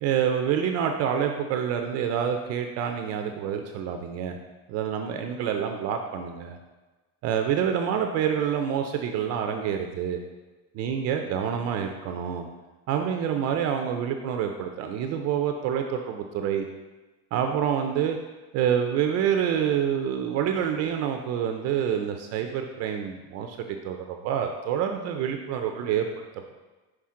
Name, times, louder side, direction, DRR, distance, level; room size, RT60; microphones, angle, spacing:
voice 1, 0.0-4.4 4.7-6.6 7.2-10.2 10.7-12.5 12.9-16.7 17.3-18.2 18.5-26.1, right 8 dB, 45° right, 4 dB, 0.4 m, -27 dB
5.8 x 4.8 x 3.6 m, 1.2 s
cardioid pair, 165°, 39 cm